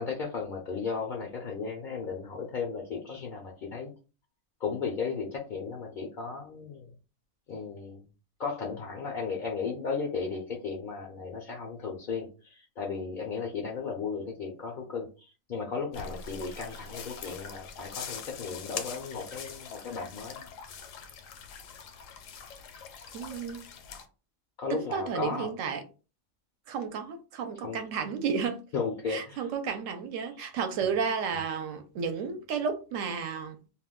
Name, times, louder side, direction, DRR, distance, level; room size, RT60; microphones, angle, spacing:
voice 1, 0.0-3.9 4.6-6.9 7.5-8.0 8.4-20.5 24.6-25.5 27.6-27.8 28.7-29.5, left 5 dB, 55° left, 0.5 m, -35 dB
sound 1, 15.9-24.0, left 6 dB, 75° left, 0.9 m, -43 dB
voice 2, 23.1-23.6 24.7-25.8 26.7-28.6 29.1-33.6, right 6 dB, 75° right, 1.0 m, -32 dB
2.5 x 2.2 x 3.5 m
omnidirectional pair, 1.4 m